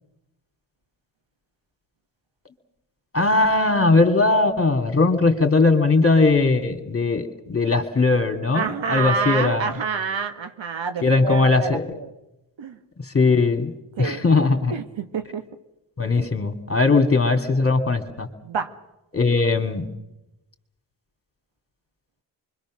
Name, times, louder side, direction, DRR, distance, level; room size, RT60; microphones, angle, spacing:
voice 1, 3.1-9.7 11.0-11.9 13.0-14.7 16.0-18.3 19.1-19.9, left 3 dB, 25° left, 6 dB, 3.1 m, -19 dB
voice 2, 8.5-12.1 12.6-12.8 14.0-14.2 14.7-15.4 16.1-16.3 18.4-18.7, right 5 dB, 65° right, 8 dB, 1.7 m, -27 dB
25.0 x 23.0 x 6.6 m, 0.94 s
supercardioid pair, 50°, 49 cm